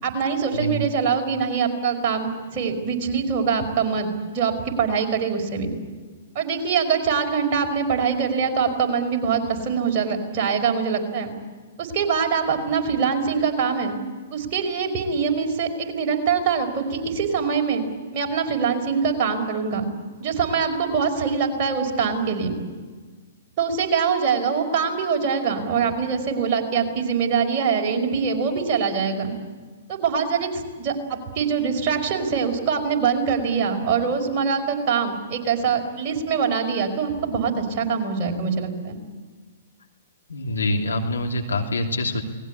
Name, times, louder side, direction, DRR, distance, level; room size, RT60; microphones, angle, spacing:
voice 1, 0.0-5.7 6.4-11.3 11.8-14.0 14.3-17.8 18.1-19.9 20.2-22.6 23.6-29.3 29.9-39.0, right 6 dB, 35° right, 2 dB, 5.2 m, -23 dB
voice 2, 0.5-0.8 40.3-42.2, left 1 dB, 75° left, 2 dB, 3.0 m, -25 dB
29.0 x 20.0 x 8.4 m, 1.5 s
figure-of-eight pair, 115°, 0 cm